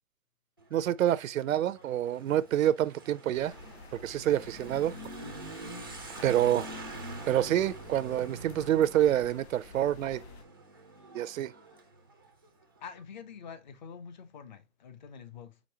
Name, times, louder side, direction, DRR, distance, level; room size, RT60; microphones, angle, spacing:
Motorcycle / Accelerating revving vroom, 0.6-12.9, right 2 dB, 20° right, 0.3 m, -46 dB
voice 1, 0.7-3.5 3.9-4.9 6.2-6.6 7.3-10.2 11.1-11.5, right 11 dB, 85° right, 0.5 m, -27 dB
sound 1, 3.3-10.4, left 4 dB, 55° left, 1.2 m, -52 dB
voice 2, 6.2-6.6 12.8-15.6, left 7 dB, 35° left, 0.7 m, -46 dB
5.2 x 3.5 x 2.8 m
hypercardioid pair, 165°, 39 cm